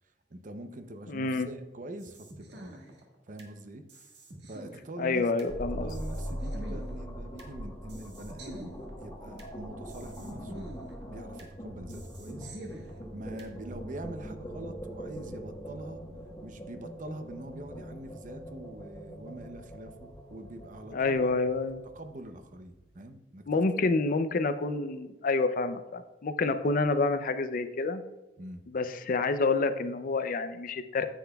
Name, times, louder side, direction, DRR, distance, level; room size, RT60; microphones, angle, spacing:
voice 1, 0.3-2.8 3.3-4.1 4.4-5.2 5.8-10.6 11.1-12.5 13.1-16.0 16.4-21.3 21.9-23.6 28.4-28.6, right 1 dB, 45° right, 8 dB, 0.7 m, -44 dB
voice 2, 1.1-1.5 5.0-5.9 20.9-21.8 23.5-28.0 28.7-31.1, left 3 dB, 50° left, 10 dB, 0.5 m, -28 dB
sound 1, 2.0-3.5 3.9-5.5 5.9-7.5 7.9-9.5 9.9-11.5 11.9-13.5, right 1 dB, 70° right, 1.5 m, -47 dB
sound 2, 5.5-22.7, equal, 25° left, 1.3 m, -42 dB
10.0 x 7.8 x 2.3 m, 1.1 s
head